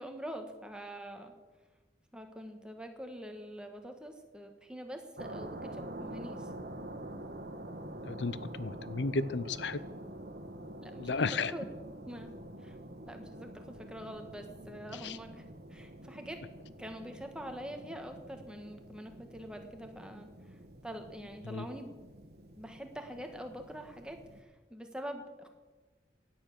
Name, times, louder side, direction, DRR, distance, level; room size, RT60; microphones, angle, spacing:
voice 1, 0.0-1.3 2.1-6.5 10.8-11.7 12.1-12.3 12.6-12.8 13.1-15.4 15.7-16.4 16.8-21.9 22.6-25.5, equal, 5° right, 4 dB, 1.5 m, -45 dB
sound 1, 5.2-24.4, right 1 dB, 60° right, 1.4 m, -47 dB
voice 2, 8.1-9.8 11.0-11.5 15.0-15.1 21.5-21.6, left 3 dB, 80° left, 15 dB, 0.7 m, -33 dB
16.5 x 10.0 x 6.7 m, 1.3 s
head